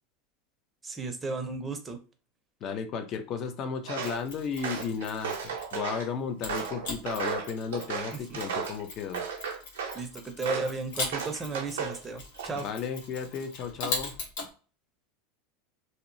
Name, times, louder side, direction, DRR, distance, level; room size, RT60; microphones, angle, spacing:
voice 1, 0.8-2.0 8.1-8.4 9.9-12.7, right 3 dB, 15° right, 5 dB, 0.6 m, -34 dB
voice 2, 2.6-9.2 12.6-14.1, left 6 dB, 40° left, 7 dB, 0.5 m, -34 dB
Walk footsteps, 3.9-4.2 4.6-6.1 6.5-8.8 9.1-10.0 10.4-10.7 11.1-12.0 12.4-12.8, right 6 dB, 90° right, 0.5 m, -34 dB
Mechanisms, 4.0-5.9 6.4-14.5, left 3 dB, 80° left, 1.0 m, -40 dB
2.8 x 2.0 x 2.6 m, 0.36 s
supercardioid pair, 120°, 0 cm